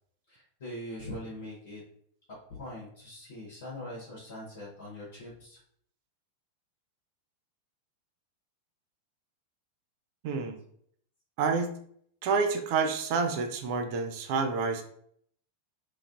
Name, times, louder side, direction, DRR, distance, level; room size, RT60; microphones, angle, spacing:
voice 1, 0.3-1.8 2.5-5.6, left 1 dB, 60° left, -4 dB, 1.0 m, -42 dB
voice 2, 10.2-10.6 11.4-11.7 12.2-14.8, right 5 dB, 45° right, 6 dB, 0.4 m, -28 dB
3.1 x 2.4 x 2.5 m, 0.64 s
figure-of-eight pair, 90°, 0 cm